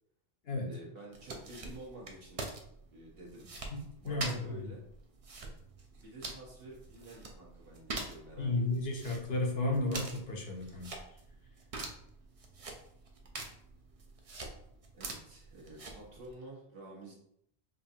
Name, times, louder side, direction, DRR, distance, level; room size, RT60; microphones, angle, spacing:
voice 1, 0.7-2.4 2.9-3.5 4.0-4.8 5.9-8.5 14.9-17.1, right 1 dB, 60° right, -3 dB, 1.4 m, -50 dB
sound 1, 1.1-16.3, right 2 dB, 40° right, 0.5 m, -45 dB
voice 2, 4.0-4.6 8.4-10.9, left 2 dB, 70° left, 1 dB, 1.1 m, -33 dB
5.2 x 2.5 x 2.7 m, 0.70 s
omnidirectional pair, 1.1 m